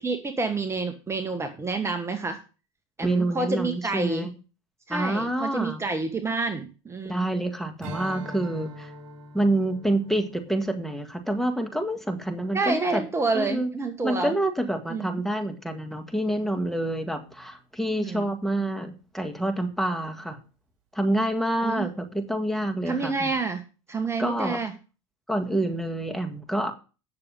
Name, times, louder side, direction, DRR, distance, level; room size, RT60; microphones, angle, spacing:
voice 1, 0.0-2.4 3.0-4.3 4.9-7.3 12.5-14.3 14.9-15.2 18.0-18.3 21.6-21.9 22.8-23.6 23.9-24.7, right 3 dB, 15° right, 6 dB, 1.4 m, -28 dB
voice 2, 3.0-4.3 4.9-5.8 7.0-8.9 9.3-13.0 13.3-13.7 14.0-20.4 20.9-23.3 24.2-24.6 25.3-26.7, right 1 dB, ahead, 5 dB, 1.7 m, -27 dB
Strum, 7.8-12.5, right 1 dB, 50° right, 4.8 m, -43 dB
9.7 x 6.7 x 5.4 m, 0.34 s
hypercardioid pair, 100°, 16 cm